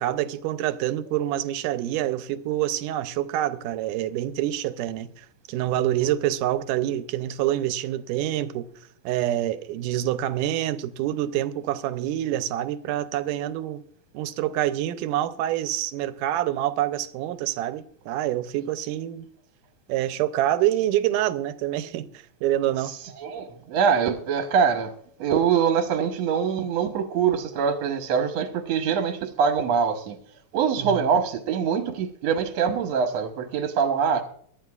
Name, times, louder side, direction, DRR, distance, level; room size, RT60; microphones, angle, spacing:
voice 1, 0.0-8.7 9.1-13.8 14.1-19.3 19.9-22.1 22.4-22.9 30.8-31.0, right 13 dB, 90° right, 2.2 m, -26 dB
voice 2, 22.9-24.9 25.2-30.2 30.5-34.2, right 7 dB, 65° right, 1.9 m, -24 dB
23.0 x 11.5 x 2.4 m
omnidirectional pair, 3.6 m